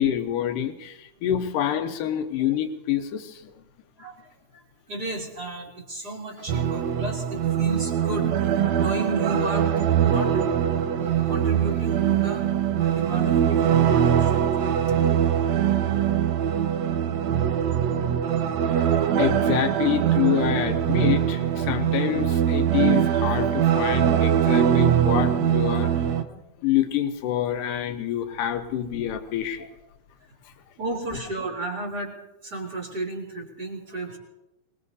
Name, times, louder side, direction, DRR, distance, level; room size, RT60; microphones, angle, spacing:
voice 1, 0.0-3.5 18.7-18.9 19.2-29.7, left 10 dB, 75° left, 6 dB, 2.6 m, -27 dB
voice 2, 4.0-10.4 11.0-12.5 12.7-14.5 29.6-29.7 30.8-32.2 32.4-34.2, right 2 dB, 30° right, -2 dB, 3.2 m, -33 dB
sound 1, 6.5-26.2, right 9 dB, 75° right, 1.6 m, -22 dB
25.0 x 20.5 x 2.7 m, 0.91 s
omnidirectional pair, 4.0 m